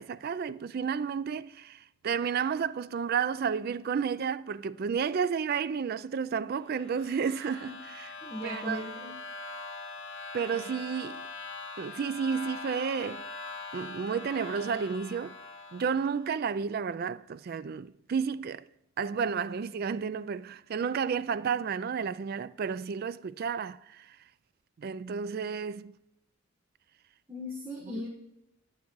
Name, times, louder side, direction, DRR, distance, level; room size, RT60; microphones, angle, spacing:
voice 1, 0.0-8.1 8.4-8.8 10.3-11.3 11.8-13.3 13.7-15.4 15.7-18.6 19.0-24.2 24.8-26.0, right 6 dB, 45° right, 0.3 m, -32 dB
sound 1, 6.6-16.3, left 2 dB, 55° left, 1.9 m, -42 dB
voice 2, 8.2-9.1 27.3-28.1, left 1 dB, 10° right, 1.4 m, -38 dB
10.5 x 9.5 x 4.7 m
head